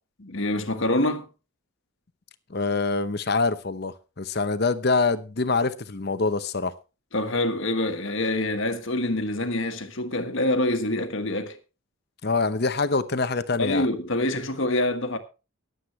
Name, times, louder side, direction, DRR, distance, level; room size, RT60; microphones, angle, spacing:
voice 1, 0.2-1.3 7.1-11.6 13.6-15.2, left 1 dB, 65° left, 1.6 m, -26 dB
voice 2, 2.5-6.7 12.2-13.9, left 3 dB, 50° left, 0.8 m, -25 dB
23.5 x 8.0 x 3.2 m
head